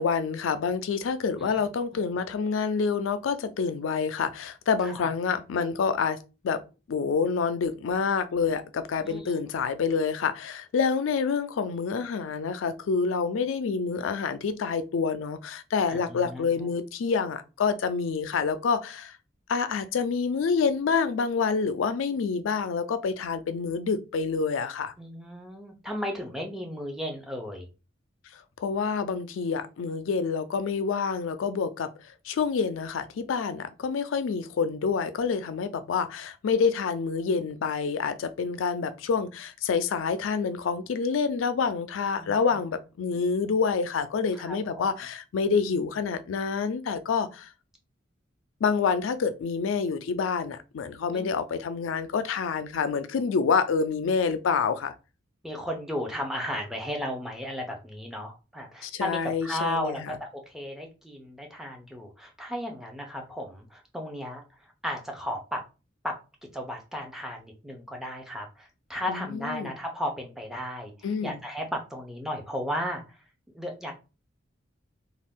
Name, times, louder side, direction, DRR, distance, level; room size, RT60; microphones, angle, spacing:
voice 1, 0.0-6.6 6.9-19.1 19.5-24.9 28.6-31.9 32.3-47.5 48.6-54.9 58.8-60.2 69.1-69.7 71.0-71.4, left 5 dB, 85° left, 0.4 m, -27 dB
voice 2, 4.8-5.1 9.0-9.3 15.9-16.7 25.0-27.7 42.2-42.7 44.3-44.8 51.1-51.3 55.4-64.4 64.8-65.6 66.0-66.2 66.5-73.2 73.5-73.9, equal, ahead, 0.5 m, -35 dB
2.5 x 2.3 x 3.5 m
head